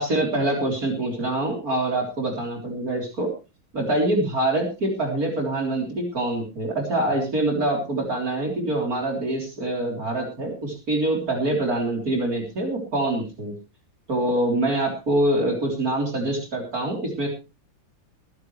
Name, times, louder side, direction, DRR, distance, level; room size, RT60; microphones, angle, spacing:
voice 1, 0.0-3.3 3.7-13.5 14.1-17.3, right 1 dB, 50° right, 1 dB, 4.0 m, -25 dB
22.0 x 10.5 x 3.2 m, 0.30 s
omnidirectional pair, 2.1 m